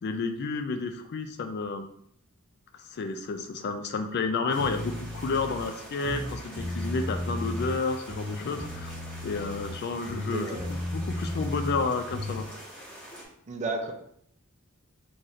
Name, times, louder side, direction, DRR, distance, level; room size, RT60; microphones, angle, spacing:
voice 1, 0.0-1.9 2.7-8.9 9.2-12.4, left 4 dB, 50° left, 7 dB, 0.3 m, -31 dB
sound 1, 4.5-13.2, equal, 5° left, 1.1 m, -45 dB
sound 2, 4.6-5.6 6.0-7.8 8.1-9.8 10.1-12.5, left 1 dB, 50° right, 1.0 m, -34 dB
voice 2, 10.3-10.7 13.5-13.9, right 2 dB, 35° right, 4 dB, 0.5 m, -32 dB
3.1 x 2.6 x 3.9 m, 0.68 s
head